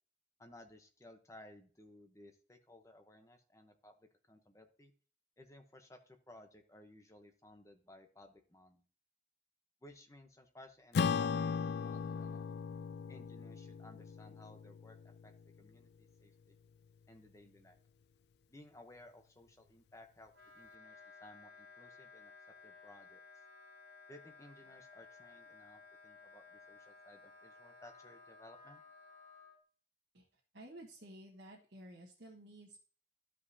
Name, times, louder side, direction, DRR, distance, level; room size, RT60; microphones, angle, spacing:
voice 1, 0.4-4.9 5.4-8.8 9.8-12.4 13.1-15.3 15.6-16.6 17.1-17.8 18.5-22.3 22.6-23.2 24.1-28.8, left 1 dB, 15° left, 5 dB, 0.9 m, -59 dB
Acoustic guitar / Strum, 10.9-15.7, left 6 dB, 60° left, 0.3 m, -37 dB
Wind instrument woodwind instrument, 20.3-29.6, left 4 dB, 60° right, 2.1 m, -57 dB
voice 2, 30.1-32.8, right 1 dB, 75° right, -4 dB, 1.5 m, -53 dB
13.5 x 5.1 x 2.8 m, 0.41 s
head